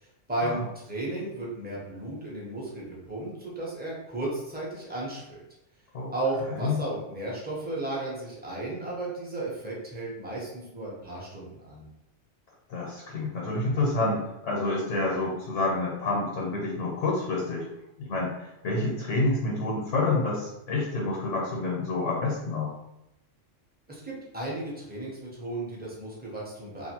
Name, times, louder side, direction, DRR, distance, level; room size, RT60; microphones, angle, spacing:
voice 1, 0.3-5.4 6.1-11.9 23.9-26.9, right 2 dB, 10° right, -5 dB, 0.5 m, -34 dB
voice 2, 12.7-17.7 18.0-22.7, left 2 dB, 80° left, -3 dB, 1.1 m, -28 dB
2.5 x 2.5 x 2.8 m, 0.87 s
omnidirectional pair, 1.3 m